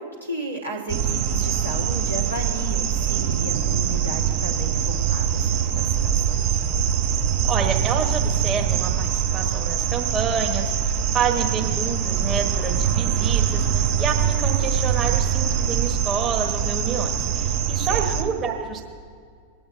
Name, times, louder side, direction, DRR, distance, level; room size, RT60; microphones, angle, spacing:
voice 1, 0.0-6.4 17.7-18.1, right 1 dB, 85° right, -4 dB, 1.9 m, -34 dB
sound 1, 0.9-18.2, right 8 dB, 45° right, 0.9 m, -23 dB
voice 2, 7.5-18.8, right 6 dB, 25° right, 1 dB, 1.4 m, -28 dB
25.0 x 8.8 x 2.7 m, 2.1 s
figure-of-eight pair, 90°, 0 cm